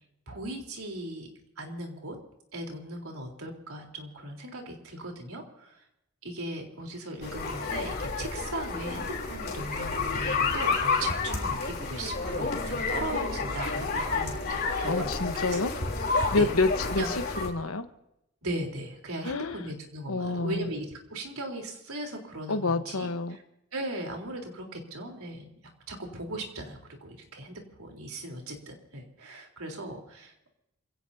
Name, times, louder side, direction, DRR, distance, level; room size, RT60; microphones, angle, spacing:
voice 1, 0.3-1.3 1.6-2.2 2.5-5.8 6.2-15.9 16.3-16.5 17.0-17.1 18.4-23.4 23.7-25.5 25.9-30.5, right 1 dB, 90° right, 2 dB, 3.9 m, -38 dB
sound 1, 7.2-17.5, left 4 dB, 50° left, 3.6 m, -30 dB
voice 2, 14.8-15.7 16.3-17.9 19.2-19.7 20.1-20.7 22.5-23.4, left 3 dB, 85° left, 8 dB, 1.2 m, -28 dB
28.0 x 17.0 x 2.8 m, 0.82 s
head